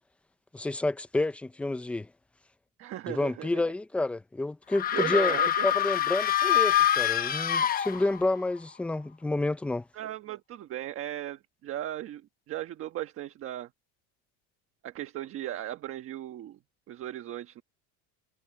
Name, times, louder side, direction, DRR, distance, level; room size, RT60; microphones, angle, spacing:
voice 1, 0.5-2.1 3.1-5.4 5.6-9.8, left 2 dB, 5° left, 0.4 m, -29 dB
voice 2, 2.8-3.6 4.9-5.7 9.9-12.2 12.5-13.7 14.8-16.6 16.9-17.6, right 13 dB, 35° right, 1.3 m, -37 dB
sound 1, 4.7-8.4, left 10 dB, 25° left, 0.9 m, -25 dB
cardioid pair, 160°, 37 cm